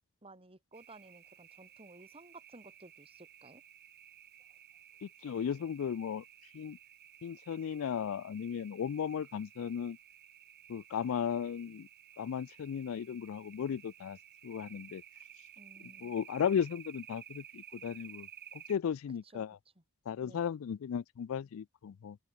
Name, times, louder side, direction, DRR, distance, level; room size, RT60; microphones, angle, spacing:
voice 1, 0.2-3.6 4.5-4.6 15.6-16.2 19.1-19.5 19.8-19.9 20.2-20.5, right 2 dB, 25° right, 5.4 m, -56 dB
sound 1, 0.7-18.8, right 10 dB, 50° right, 1.0 m, -55 dB
voice 2, 5.0-6.2 6.5-6.8 7.2-10.0 10.7-11.9 12.2-14.2 14.4-15.0 16.0-18.3 18.5-19.5 20.1-22.2, left 7 dB, 70° left, 0.3 m, -35 dB
open air
head